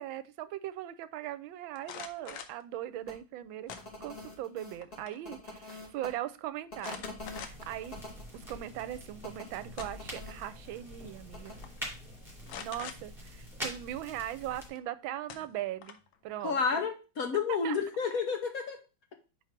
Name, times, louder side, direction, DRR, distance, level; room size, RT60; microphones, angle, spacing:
voice 1, 0.0-3.7 4.0-7.0 7.3-7.9 8.3-11.6 12.6-16.9 17.6-17.8, right 13 dB, 80° right, 13 dB, 1.4 m, -39 dB
sound 1, 1.8-2.6 3.7-4.3 4.7-5.2 5.5-5.6 6.8-7.8 8.3-8.4 9.4-10.2 11.2-11.3 11.6-11.9 12.5-13.0 14.7-14.8 15.3-16.1, left 8 dB, 80° left, 1.5 m, -44 dB
sound 2, 3.0-3.1 3.6-6.1 6.7-8.2 9.2-10.3 11.3-11.5, left 2 dB, 20° left, 2.1 m, -45 dB
sound 3, 7.2-14.7, equal, ahead, 2.5 m, -45 dB
voice 2, 16.4-18.8, left 5 dB, 60° left, 5 dB, 1.0 m, -30 dB
4.7 x 4.6 x 5.7 m, 0.32 s
omnidirectional pair, 2.2 m